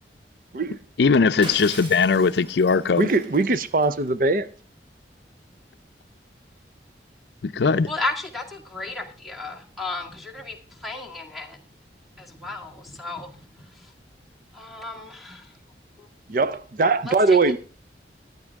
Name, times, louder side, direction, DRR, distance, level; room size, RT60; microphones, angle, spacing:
voice 1, 1.0-3.1 7.4-7.9, left 4 dB, 70° left, 0.5 m, -19 dB
Shatter, 1.4-4.1, equal, 30° right, 3.0 m, -40 dB
voice 2, 3.0-4.5 16.3-17.6, right 3 dB, 50° right, 0.6 m, -21 dB
voice 3, 7.9-11.6 12.2-13.4 13.8-13.9 14.5-15.5 16.0-16.1 17.1-17.6, left 3 dB, ahead, 1.9 m, -34 dB
14.0 x 9.6 x 3.5 m
head